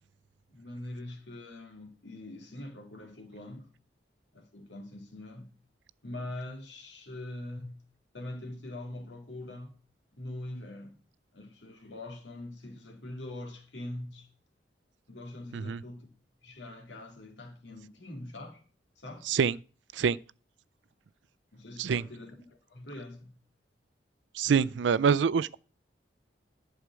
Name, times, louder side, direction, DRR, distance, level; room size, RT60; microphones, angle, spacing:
voice 1, 0.5-3.7 4.3-5.5 6.0-7.8 8.1-9.7 10.1-11.0 11.3-14.3 15.1-16.1 16.4-18.6 19.0-19.3 21.5-23.4, left 1 dB, 85° left, 2.2 m, -43 dB
voice 2, 24.3-25.6, right 6 dB, 85° right, 0.4 m, -25 dB
11.0 x 4.9 x 7.5 m
head